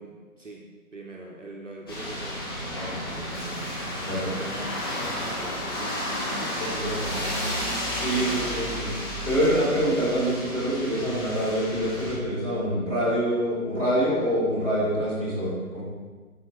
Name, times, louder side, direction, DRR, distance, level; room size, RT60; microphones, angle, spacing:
voice 1, 0.0-3.8 4.3-7.3 8.2-8.6, right 2 dB, 55° right, 0 dB, 0.8 m, -43 dB
sound 1, 1.9-12.1, equal, 15° left, 0.9 m, -32 dB
voice 2, 6.6-6.9 7.9-15.8, equal, 10° right, -12 dB, 2.0 m, -26 dB
11.5 x 4.3 x 3.1 m, 1.4 s
figure-of-eight pair, 150°, 44 cm